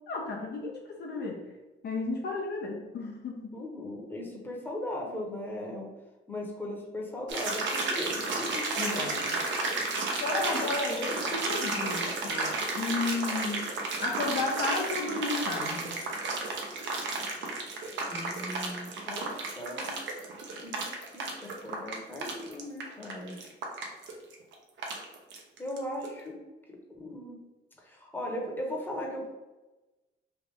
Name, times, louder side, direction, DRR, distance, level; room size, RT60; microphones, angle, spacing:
voice 1, 0.1-1.4 1.8-3.5 8.8-9.4 10.2-13.7 14.0-16.0, left 3 dB, 60° left, 0 dB, 0.6 m, -33 dB
voice 2, 3.5-5.9 6.3-8.8 9.1-9.4 18.1-19.3 19.6-19.9 20.6-23.5 25.6-26.4 26.7-27.4 27.8-29.3, left 1 dB, 10° left, -1 dB, 0.9 m, -38 dB
sound 1, 7.3-25.8 26.0-26.1, right 3 dB, 70° right, 0.7 m, -32 dB
3.2 x 2.5 x 3.4 m, 1.1 s
cardioid pair, 90°, 20 cm